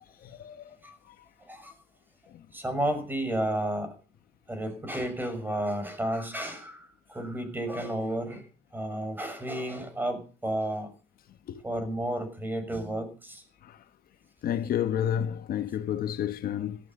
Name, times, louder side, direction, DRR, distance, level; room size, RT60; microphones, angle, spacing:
voice 1, 0.2-0.8 1.1-1.2 2.3-2.5 11.5-11.6 13.6-13.8 14.4-16.8, left 10 dB, 60° left, 1.4 m, -31 dB
voice 2, 2.5-3.9 4.5-8.4 8.7-10.9 11.6-13.4, right 1 dB, 10° right, 6.0 m, -32 dB
17.5 x 12.5 x 5.5 m
cardioid pair, 110°, 17 cm